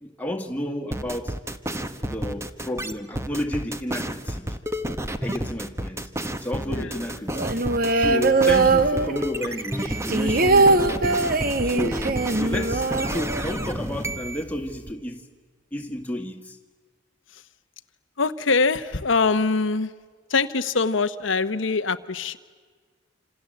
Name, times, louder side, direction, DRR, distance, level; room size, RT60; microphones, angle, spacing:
voice 1, 0.0-1.4 2.0-4.4 5.2-6.1 6.4-7.5 8.0-11.3 11.6-15.2 15.7-16.6, left 1 dB, 10° left, 1.9 m, -31 dB
sound 1, 0.9-14.4, right 1 dB, 15° right, 1.2 m, -30 dB
sound 2, 7.3-9.5 9.8-13.7 14.0-14.1 14.4-14.9, right 3 dB, 45° right, 1.2 m, -21 dB
voice 2, 18.2-19.9 20.3-22.4, left 4 dB, 80° left, 1.0 m, -23 dB
28.0 x 27.0 x 7.8 m
head